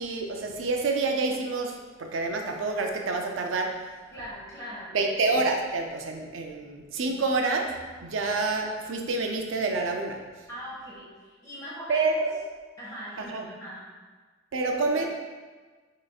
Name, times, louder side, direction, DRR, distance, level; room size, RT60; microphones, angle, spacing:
voice 1, 0.0-3.8 4.9-10.2 11.9-12.4 13.2-13.4 14.5-15.1, right 3 dB, 75° right, 2 dB, 0.5 m, -28 dB
voice 2, 4.1-5.0 10.5-12.1 12.8-13.9 14.6-14.7, equal, 15° left, -8 dB, 1.4 m, -40 dB
6.2 x 3.1 x 2.4 m, 1.4 s
head